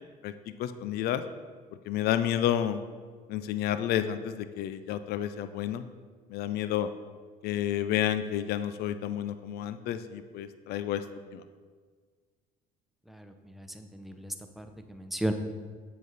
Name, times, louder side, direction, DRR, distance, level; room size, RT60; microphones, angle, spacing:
voice 1, 0.6-1.2 1.8-2.8 3.3-5.9 6.3-6.9 7.4-11.0 11.3-11.4, left 11 dB, 60° left, 11 dB, 0.5 m, -30 dB
voice 2, 13.1-15.3, right 1 dB, ahead, 6 dB, 0.7 m, -36 dB
7.4 x 5.2 x 4.1 m, 1.6 s
hypercardioid pair, 70°, 19 cm